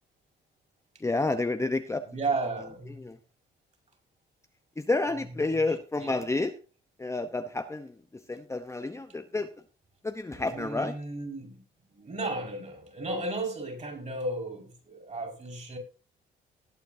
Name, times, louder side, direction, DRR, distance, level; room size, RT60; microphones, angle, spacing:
voice 1, 1.0-2.0 3.0-3.2 4.8-6.6 7.0-7.9 8.3-9.5 10.0-10.9, left 2 dB, 15° left, 7 dB, 0.8 m, -29 dB
voice 2, 2.0-3.0 5.1-5.6 6.0-6.3 10.3-11.6 11.9-15.8, right 2 dB, 35° right, 0 dB, 5.4 m, -34 dB
19.0 x 9.1 x 2.7 m, 0.34 s
cardioid pair, 90°, 20 cm